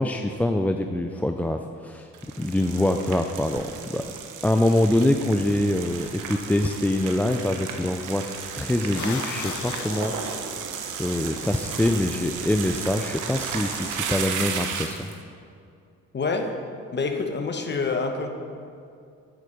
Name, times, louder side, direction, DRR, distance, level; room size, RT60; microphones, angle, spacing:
voice 1, 0.0-2.1 2.4-4.1 4.4-8.3 8.6-10.4 11.0-15.1, left 1 dB, 5° left, 5 dB, 0.3 m, -24 dB
sound 1, 2.1-15.1, right 6 dB, 80° right, 1.0 m, -34 dB
sound 2, 8.9-10.9, left 8 dB, 70° left, 0.7 m, -36 dB
voice 2, 16.1-16.5 16.9-18.3, left 4 dB, 35° left, 4 dB, 1.2 m, -26 dB
8.6 x 8.2 x 5.3 m, 2.4 s
cardioid pair, 90°, 30 cm